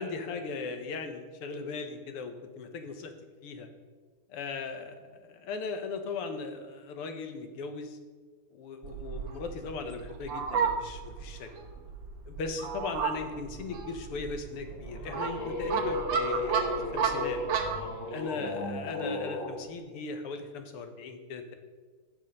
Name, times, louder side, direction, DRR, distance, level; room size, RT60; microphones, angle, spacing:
voice 1, 0.0-3.1 3.4-3.7 4.3-8.0 8.5-11.5 12.3-17.4 18.1-21.5, left 4 dB, 90° left, 6 dB, 2.1 m, -38 dB
Fowl, 8.8-17.9, right 6 dB, 65° right, 1.7 m, -33 dB
sound 1, 14.7-19.5, left 2 dB, 60° left, 2.5 m, -34 dB
16.0 x 5.6 x 5.4 m, 1.4 s
omnidirectional pair, 2.4 m